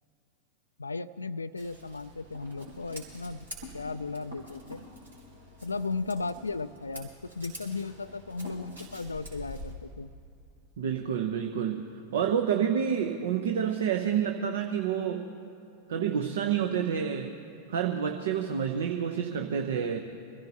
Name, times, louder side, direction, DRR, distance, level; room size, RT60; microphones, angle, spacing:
voice 1, 0.8-3.5 3.7-4.8 5.6-7.1 7.4-10.1, left 4 dB, 80° left, 11 dB, 0.3 m, -35 dB
Scissors, 1.6-9.7, equal, 75° right, 3.5 m, -46 dB
voice 2, 10.8-11.8 12.1-15.3 15.9-17.3 17.7-20.0, right 8 dB, 60° right, 6 dB, 0.8 m, -28 dB
25.0 x 15.5 x 2.9 m, 2.6 s
figure-of-eight pair, 90°, 0 cm